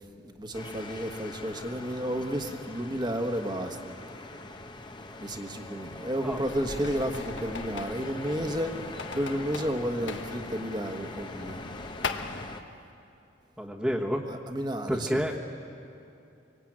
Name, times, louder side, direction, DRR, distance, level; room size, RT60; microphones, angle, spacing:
voice 1, 0.2-3.9 5.2-8.7 9.1-11.6 14.3-15.2, equal, 20° right, 5 dB, 1.5 m, -32 dB
sound 1, 0.5-12.6, left 2 dB, 25° left, 1.1 m, -42 dB
sound 2, 6.3-12.4, left 4 dB, 75° left, 1.3 m, -40 dB
voice 2, 13.6-14.3 14.9-15.4, equal, 5° right, -4 dB, 1.4 m, -29 dB
24.5 x 24.0 x 8.9 m, 2.7 s
head